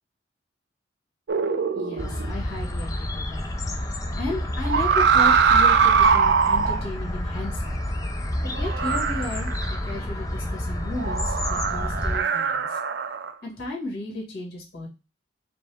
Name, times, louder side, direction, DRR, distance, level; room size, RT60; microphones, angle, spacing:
sound 1, 1.3-2.3 4.6-6.8 8.5-9.9 11.0-13.3, right 6 dB, 60° right, 0.4 m, -21 dB
voice 1, 1.7-3.4 3.8-3.9 4.2-7.8 8.4-9.5 9.8-12.8 13.4-14.9, left 2 dB, 55° left, -1 dB, 1.7 m, -34 dB
sound 2, 2.0-12.2, left 1 dB, 20° left, 0.5 m, -29 dB
5.1 x 2.2 x 3.4 m, 0.29 s
head